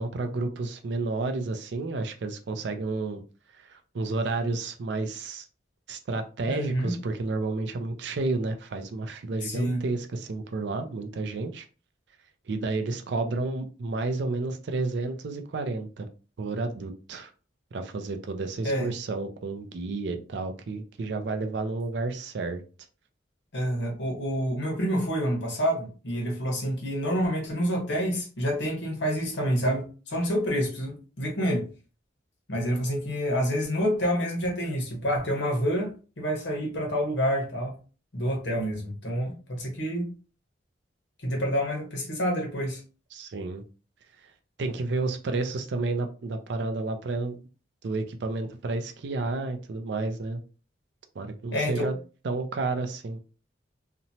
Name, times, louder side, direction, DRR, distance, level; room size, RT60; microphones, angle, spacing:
voice 1, 0.0-3.2 3.5-5.5 5.9-11.7 12.5-16.1 16.4-17.3 17.7-22.6 43.1-43.6 44.6-47.4 47.8-50.4 51.2-52.0 52.2-53.2, right 3 dB, 60° right, 6 dB, 0.4 m, -31 dB
voice 2, 6.5-6.9 9.4-9.8 18.6-18.9 23.5-31.7 32.5-35.9 36.2-37.7 38.1-40.1 41.2-42.8 51.5-51.9, equal, 65° left, 0 dB, 1.0 m, -28 dB
2.9 x 2.1 x 2.7 m, 0.35 s
head